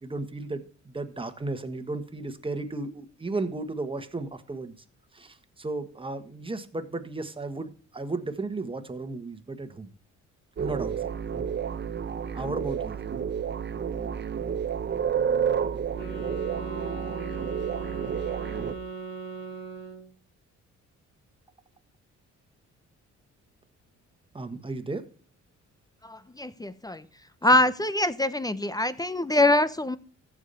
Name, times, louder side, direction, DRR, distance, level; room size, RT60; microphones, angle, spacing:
voice 1, 0.0-4.8 5.1-9.9 10.6-11.1 12.3-13.0 24.3-25.0, right 3 dB, 15° right, 1.5 m, -34 dB
sound 1, 10.6-18.8, right 7 dB, 35° right, 0.9 m, -30 dB
sound 2, 15.9-20.1, right 5 dB, 35° left, 3.5 m, -38 dB
voice 2, 26.0-27.0 27.4-30.0, left 1 dB, 10° left, 0.7 m, -24 dB
14.5 x 4.9 x 5.6 m
cardioid pair, 90°, 30 cm